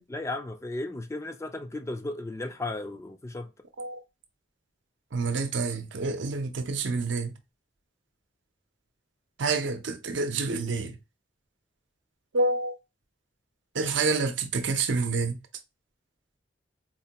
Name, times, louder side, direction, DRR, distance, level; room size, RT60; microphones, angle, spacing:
voice 1, 0.1-3.5, left 2 dB, 15° left, 0.3 m, -35 dB
voice 2, 5.1-7.3 9.4-10.9 12.3-12.7 13.8-15.4, right 3 dB, 80° right, 0.6 m, -28 dB
4.1 x 2.2 x 2.8 m
head